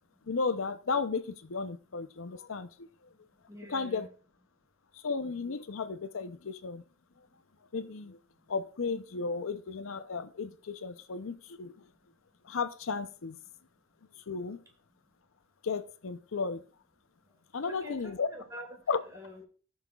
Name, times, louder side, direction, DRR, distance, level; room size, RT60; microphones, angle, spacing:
voice 1, 0.3-2.7 3.7-4.1 5.0-6.8 7.7-8.2 8.5-11.7 12.5-13.4 14.3-14.6 15.6-16.6 17.5-18.3 18.9-19.0, left 4 dB, 85° left, 0.6 m, -34 dB
voice 2, 3.5-4.1 17.6-19.5, equal, 15° right, 1.8 m, -47 dB
18.0 x 6.4 x 2.4 m
head